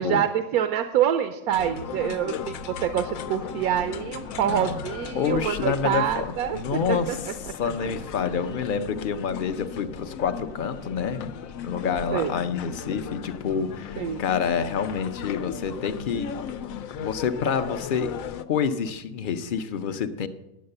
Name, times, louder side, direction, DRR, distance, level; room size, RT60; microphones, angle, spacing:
voice 1, 0.0-7.2 12.1-12.3 14.0-14.2, right 10 dB, 85° right, 8 dB, 1.1 m, -26 dB
sound 1, 1.5-18.4, left 7 dB, 70° left, 1.0 m, -37 dB
voice 2, 4.5-4.8 5.1-7.2 7.4-16.3 17.0-18.1 18.5-20.3, left 6 dB, 50° left, 9 dB, 0.6 m, -28 dB
10.5 x 7.9 x 6.6 m, 0.97 s
omnidirectional pair, 1.5 m